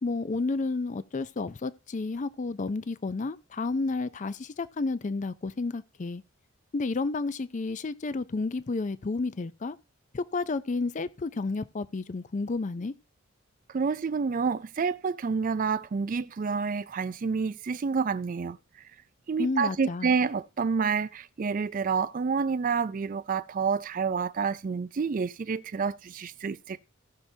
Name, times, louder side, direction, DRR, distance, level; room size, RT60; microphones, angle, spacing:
voice 1, 0.0-6.2 6.7-9.8 10.1-12.9 19.4-20.1, left 3 dB, 35° left, 0.4 m, -31 dB
voice 2, 13.7-18.6 19.3-26.8, right 5 dB, 40° right, 0.4 m, -28 dB
18.0 x 5.9 x 2.7 m
head